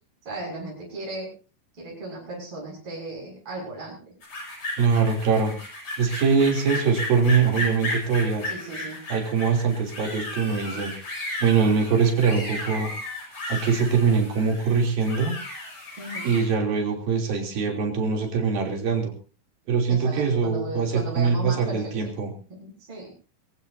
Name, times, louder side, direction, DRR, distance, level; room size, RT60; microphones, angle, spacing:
voice 1, 0.2-1.3 1.8-4.1 8.4-9.0 16.0-16.4 19.9-22.1 22.5-23.1, right 2 dB, 35° right, -3 dB, 8.0 m, -36 dB
sound 1, 4.2-16.5, left 1 dB, 45° left, 8.0 m, -34 dB
voice 2, 4.8-5.6 6.0-8.5 9.1-10.9 11.4-12.9 13.5-15.4 16.2-19.1 19.7-22.3, right 5 dB, 75° right, 2 dB, 5.1 m, -23 dB
24.0 x 16.0 x 2.8 m, 0.35 s
omnidirectional pair, 4.1 m